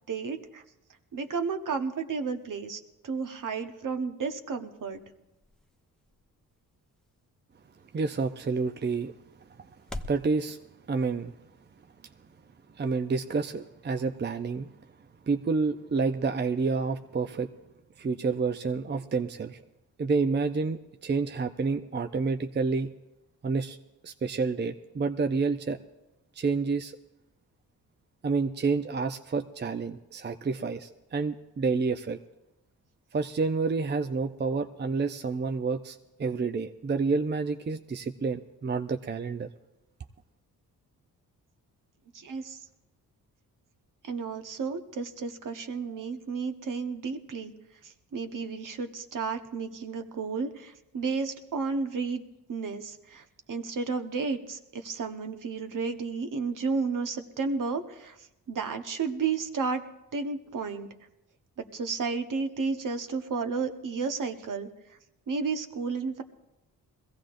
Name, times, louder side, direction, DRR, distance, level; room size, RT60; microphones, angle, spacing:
voice 1, 0.1-0.6 1.1-5.0 42.1-42.6 44.0-47.5 47.8-52.2 52.5-58.2 58.5-59.8 60.1-60.9 61.6-64.7 65.3-66.2, right 5 dB, 55° right, 6 dB, 1.2 m, -32 dB
sound 1, 4.0-10.3, left 1 dB, ahead, 0.8 m, -48 dB
voice 2, 7.9-9.1 9.6-9.7 10.1-10.6 10.9-11.3 12.8-14.7 15.3-17.5 18.0-19.6 20.0-22.9 23.4-23.8 24.0-25.8 26.3-27.0 28.2-32.2 33.1-39.5, right 4 dB, 30° right, 7 dB, 0.6 m, -29 dB
21.5 x 15.5 x 2.6 m, 0.96 s
supercardioid pair, 55°, 38 cm